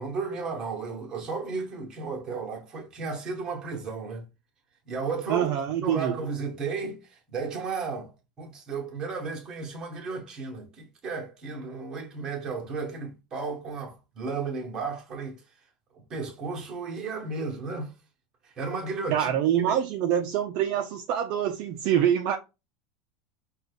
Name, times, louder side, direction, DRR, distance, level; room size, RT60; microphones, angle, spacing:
voice 1, 0.0-4.3 4.9-5.5 5.8-8.1 8.4-15.4 16.1-17.9 18.4-19.3 19.6-19.7, right 4 dB, 20° right, 1.1 m, -34 dB
voice 2, 5.3-6.1 19.1-22.4, right 10 dB, 45° right, 0.4 m, -25 dB
5.2 x 2.3 x 3.3 m
supercardioid pair, 165°, 3 cm